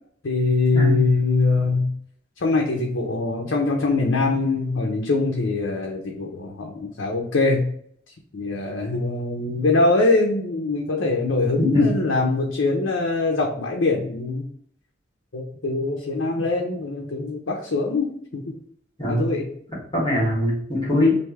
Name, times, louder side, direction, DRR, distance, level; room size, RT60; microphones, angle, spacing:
voice 1, 0.2-1.9 2.4-7.7 8.3-14.4 15.3-18.6 19.1-19.5, left 3 dB, 75° left, 0 dB, 0.7 m, -23 dB
voice 2, 19.0-19.3 19.9-21.2, left 1 dB, 25° left, -6 dB, 1.6 m, -21 dB
3.3 x 2.7 x 4.6 m, 0.64 s
head